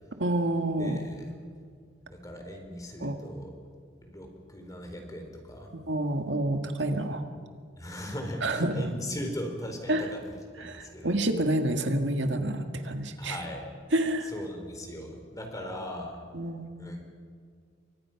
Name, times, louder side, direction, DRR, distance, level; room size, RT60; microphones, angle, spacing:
voice 1, 0.2-1.0 3.0-3.2 5.9-7.2 8.4-8.9 9.9-10.1 10.6-13.4 13.9-14.3 16.3-16.7, right 1 dB, 70° right, 5 dB, 1.9 m, -28 dB
voice 2, 0.8-1.2 2.1-3.5 4.0-5.7 7.8-10.2 10.5-11.1 13.2-13.7 14.2-16.2 16.8-17.0, equal, 20° left, 3 dB, 4.1 m, -39 dB
29.0 x 24.0 x 6.0 m, 2.1 s
head